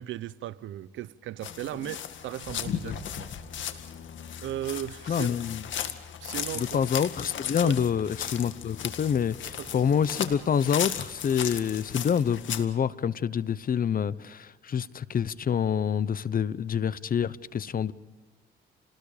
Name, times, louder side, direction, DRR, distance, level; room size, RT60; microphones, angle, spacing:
voice 1, 0.0-3.3 4.4-5.3 6.2-6.8 7.6-7.8 9.6-9.7, right 13 dB, 80° right, 0.8 m, -36 dB
sound 1, 1.4-12.6, left 9 dB, 70° left, 2.0 m, -36 dB
voice 2, 5.1-5.6 6.5-17.9, left 7 dB, 45° left, 1.0 m, -27 dB
29.5 x 20.0 x 5.1 m
cardioid pair, 90°, 20 cm